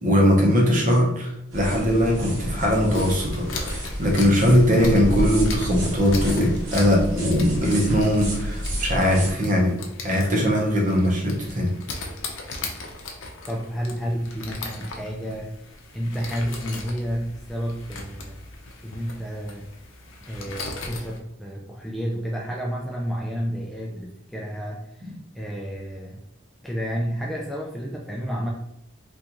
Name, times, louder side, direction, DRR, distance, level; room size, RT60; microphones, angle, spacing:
voice 1, 0.0-9.8 10.0-11.7, equal, 40° right, -1 dB, 0.8 m, -20 dB
sound 1, 1.5-9.3, equal, 85° right, 1.0 m, -30 dB
sound 2, 2.9-21.2, left 3 dB, 80° left, 0.6 m, -38 dB
voice 2, 13.5-18.4 18.8-19.7 20.2-26.2 26.6-28.5, equal, ahead, -3 dB, 0.3 m, -31 dB
3.6 x 2.5 x 2.9 m, 0.79 s
head